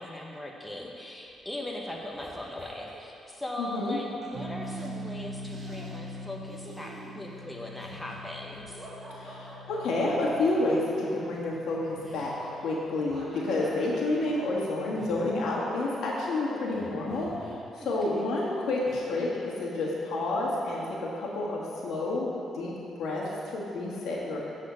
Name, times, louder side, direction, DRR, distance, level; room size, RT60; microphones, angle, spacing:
voice 1, 0.0-8.9 18.1-18.2, left 1 dB, 5° left, -1 dB, 0.8 m, -39 dB
sound 1, 1.3-1.5 1.8-3.0 4.2-4.3 4.6-4.9 5.4-6.2 6.5-9.9 11.0-18.5 18.8-19.0, right 1 dB, 30° right, 1.6 m, -48 dB
voice 2, 3.6-4.0 9.1-22.3 22.5-22.7 23.0-24.4, left 2 dB, 75° left, -5 dB, 1.7 m, -29 dB
sound 2, 4.3-14.9, equal, 85° right, 0.8 m, -44 dB
8.1 x 4.2 x 6.3 m, 2.7 s
cardioid pair, 90°, 0 cm